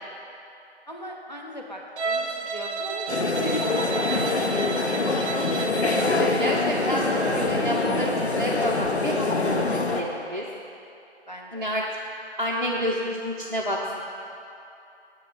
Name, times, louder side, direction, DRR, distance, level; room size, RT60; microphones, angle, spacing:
voice 1, 0.9-4.6 5.0-5.1 11.3-11.8, equal, 40° left, -1 dB, 0.7 m, -39 dB
Bowed string instrument, 2.0-6.2, right 4 dB, 80° right, 0.7 m, -31 dB
sound 1, 3.1-10.0, left 3 dB, 70° left, 0.8 m, -25 dB
voice 2, 6.1-10.4 11.5-11.8 12.4-14.0, equal, 45° right, -4 dB, 0.5 m, -29 dB
6.8 x 4.7 x 6.5 m, 2.7 s
figure-of-eight pair, 175°, 34 cm